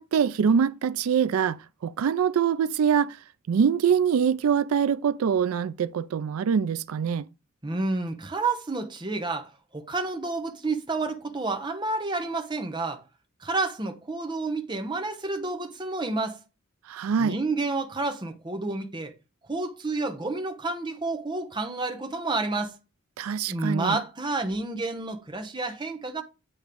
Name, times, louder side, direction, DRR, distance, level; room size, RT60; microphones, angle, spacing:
voice 1, 0.0-3.2 3.5-7.2 16.9-17.4 23.2-24.0, right 7 dB, 90° right, 0.4 m, -24 dB
voice 2, 7.6-13.0 13.4-16.4 17.2-19.1 19.5-22.7 23.5-26.2, right 3 dB, 20° right, 0.8 m, -30 dB
8.5 x 3.1 x 5.1 m
head